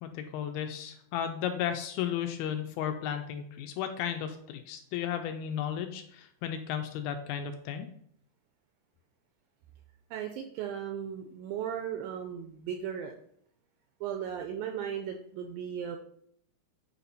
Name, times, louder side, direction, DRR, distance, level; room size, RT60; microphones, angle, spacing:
voice 1, 0.0-7.9, left 9 dB, 80° left, 7 dB, 2.2 m, -34 dB
voice 2, 10.1-13.1 14.0-16.0, right 8 dB, 85° right, 5 dB, 2.0 m, -36 dB
8.4 x 4.2 x 4.0 m, 0.66 s
omnidirectional pair, 4.6 m